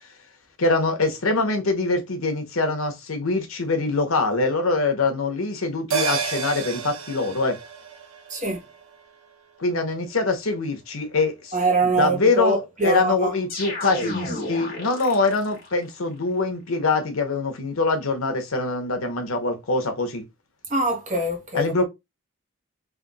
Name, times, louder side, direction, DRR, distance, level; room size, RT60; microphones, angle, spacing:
voice 1, 0.6-7.6 9.6-11.5 11.8-20.2 21.5-21.8, left 3 dB, 85° left, 1.1 m, -24 dB
sound 1, 5.9-10.6 10.9-11.0, right 6 dB, 85° right, 1.1 m, -32 dB
voice 2, 8.3-8.6 11.5-13.3 20.7-21.7, right 2 dB, 35° right, 1.3 m, -23 dB
sound 2, 13.5-15.7, left 2 dB, 45° left, 1.6 m, -32 dB
3.5 x 2.6 x 4.0 m
head